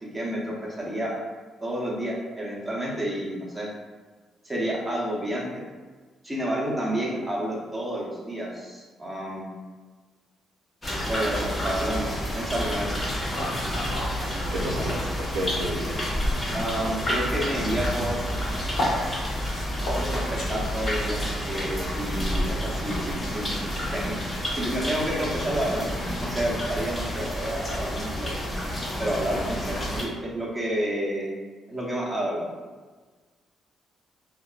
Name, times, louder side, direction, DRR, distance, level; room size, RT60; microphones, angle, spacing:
voice 1, 0.0-1.1 1.6-3.7 4.4-5.6 6.2-9.5 11.0-13.0 16.5-18.4 19.9-23.5 23.9-24.1 24.5-28.3 29.0-31.3 31.7-32.6, right 1 dB, 10° right, -5 dB, 0.8 m, -30 dB
sound 1, 10.8-30.0, equal, 25° left, 0.7 m, -29 dB
sound 2, 13.3-15.1 15.4-23.2, left 1 dB, 75° left, 0.8 m, -34 dB
voice 2, 14.3-15.9, right 1 dB, 90° right, -1 dB, 0.4 m, -31 dB
2.6 x 2.4 x 2.3 m, 1.4 s
cardioid pair, 90°, 0 cm